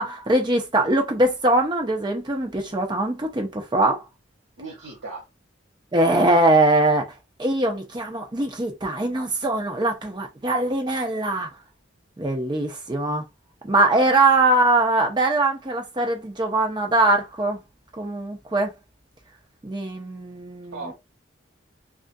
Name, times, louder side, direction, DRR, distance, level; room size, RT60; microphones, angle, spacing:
voice 1, 0.0-4.0 5.9-11.5 12.2-13.2 13.6-17.6 17.9-18.7 19.6-20.9, right 2 dB, 20° right, 0.5 m, -22 dB
voice 2, 4.6-5.3 13.9-14.1 20.7-20.9, right 3 dB, 85° right, 1.1 m, -36 dB
2.4 x 2.4 x 2.5 m
head